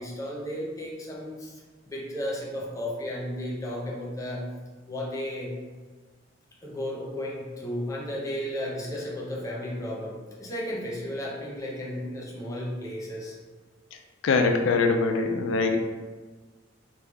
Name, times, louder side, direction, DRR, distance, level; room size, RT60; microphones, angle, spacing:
voice 1, 0.0-1.6 1.9-4.5 4.9-5.6 6.6-13.4, left 1 dB, 15° left, -4 dB, 0.6 m, -34 dB
voice 2, 14.2-15.8, left 4 dB, 90° left, 4 dB, 0.3 m, -23 dB
3.4 x 2.2 x 3.3 m, 1.4 s
head